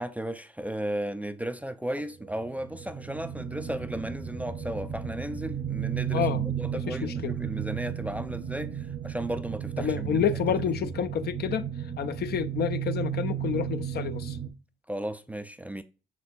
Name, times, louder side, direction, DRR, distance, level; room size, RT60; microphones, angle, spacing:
voice 1, 0.0-10.3 10.8-10.9 14.9-15.8, right 1 dB, 5° right, 0.3 m, -35 dB
sound 1, 2.2-14.5, right 9 dB, 45° right, 0.7 m, -34 dB
voice 2, 6.7-7.3 9.8-11.7 12.0-14.4, left 8 dB, 55° left, 0.4 m, -29 dB
6.0 x 3.2 x 2.5 m
cardioid pair, 90°, 20 cm